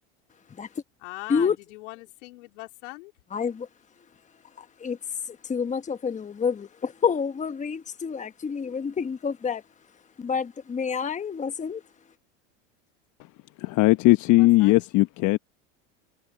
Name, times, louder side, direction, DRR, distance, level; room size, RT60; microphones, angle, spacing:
voice 1, 1.0-3.1 14.4-14.8, left 23 dB, 70° left, 3.7 m, -41 dB
voice 2, 3.3-3.7 4.6-9.6 10.2-11.8, left 6 dB, 20° left, 1.2 m, -28 dB
voice 3, 13.7-15.4, left 19 dB, 50° left, 1.1 m, -18 dB
hypercardioid pair, 95°, 37 cm